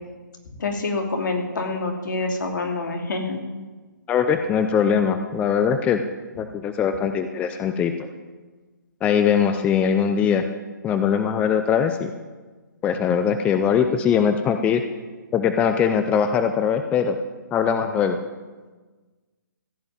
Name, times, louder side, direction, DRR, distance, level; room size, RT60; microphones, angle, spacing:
voice 1, 0.6-3.4, left 3 dB, 70° left, 3 dB, 2.6 m, -26 dB
voice 2, 4.1-6.0 6.4-8.1 9.0-10.4 10.8-12.1 12.8-14.8 15.3-17.2 17.5-18.2, left 7 dB, 10° left, 8 dB, 0.5 m, -21 dB
15.0 x 5.6 x 9.0 m, 1.3 s
hypercardioid pair, 145°, 11 cm